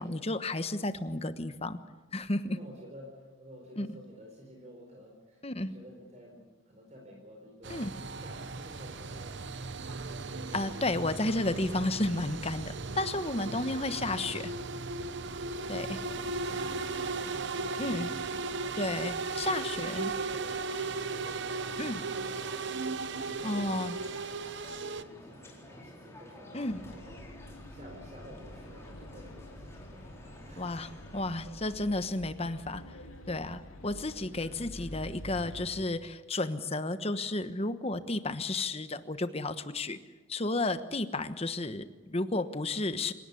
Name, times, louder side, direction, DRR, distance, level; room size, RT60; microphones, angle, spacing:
voice 1, 0.0-1.8 2.1-2.6 3.8-3.9 5.4-5.7 7.7-7.9 10.5-14.5 15.7-16.0 17.8-18.1 18.8-20.1 21.8-22.0 23.4-24.0 26.5-26.8 30.6-33.0 33.3-40.0 40.3-43.1, left 2 dB, 30° left, 11 dB, 1.2 m, -32 dB
voice 2, 2.5-5.4 5.7-7.8 8.1-9.9 15.9-18.3 19.3-19.7 19.9-24.2 25.0-27.1 27.7-31.1, equal, 35° right, 1 dB, 4.4 m, -52 dB
sound 1, 7.6-25.0, right 3 dB, 60° right, 0.9 m, -36 dB
sound 2, 15.9-31.3, left 1 dB, 15° left, 4.4 m, -51 dB
sound 3, 26.7-35.8, left 1 dB, 80° left, 3.3 m, -48 dB
27.5 x 18.0 x 8.5 m, 1.3 s
head